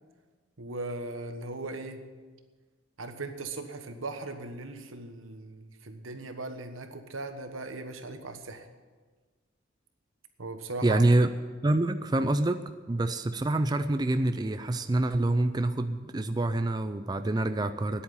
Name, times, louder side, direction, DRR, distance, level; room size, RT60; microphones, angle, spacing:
voice 1, 0.6-2.0 3.0-8.7 10.4-11.0, right 2 dB, 90° right, 7 dB, 1.3 m, -38 dB
voice 2, 10.8-11.3 11.6-12.6 12.9-18.0, right 2 dB, 20° right, 9 dB, 0.4 m, -26 dB
9.9 x 8.5 x 10.0 m, 1.4 s
head